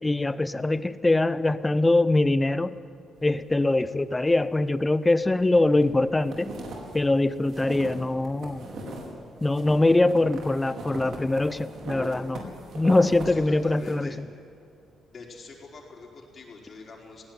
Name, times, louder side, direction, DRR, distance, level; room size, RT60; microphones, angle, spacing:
voice 1, 0.0-2.8 3.2-6.5 6.9-8.7 9.4-12.4 12.7-14.3, left 2 dB, 15° left, 15 dB, 0.7 m, -23 dB
sound 1, 5.3-5.9 6.2-9.1 9.4-13.3 13.6-14.0, right 2 dB, 65° right, 4.8 m, -39 dB
voice 2, 13.2-14.2 15.1-17.2, left 4 dB, 45° left, 0 dB, 4.4 m, -44 dB
19.5 x 16.5 x 9.6 m, 2.6 s
cardioid pair, 90°, 0 cm